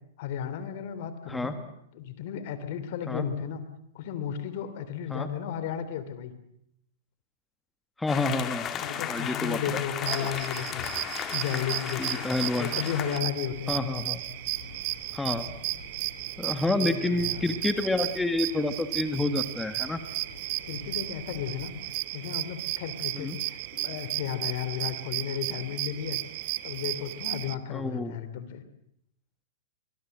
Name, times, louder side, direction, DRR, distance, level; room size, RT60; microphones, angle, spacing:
voice 1, 0.2-1.6 1.9-3.6 3.9-6.3 8.8-10.9 11.3-12.2 12.6-13.8 16.8-17.5 19.8-19.9 20.7-21.7 22.1-26.2 26.6-28.6, left 9 dB, 60° left, 12 dB, 3.0 m, -34 dB
voice 2, 8.0-9.8 11.2-11.3 12.0-12.7 13.7-14.2 15.1-15.5 16.4-20.0 23.2-23.4 27.7-28.1, left 2 dB, 10° left, 8 dB, 1.8 m, -29 dB
sound 1, 8.1-13.2, left 9 dB, 30° left, 2.1 m, -34 dB
sound 2, 10.1-27.5, right 19 dB, 50° right, 1.1 m, -34 dB
sound 3, 13.3-21.9, left 3 dB, 85° left, 7.8 m, -48 dB
23.0 x 21.5 x 7.8 m, 0.74 s
hypercardioid pair, 115°, 0 cm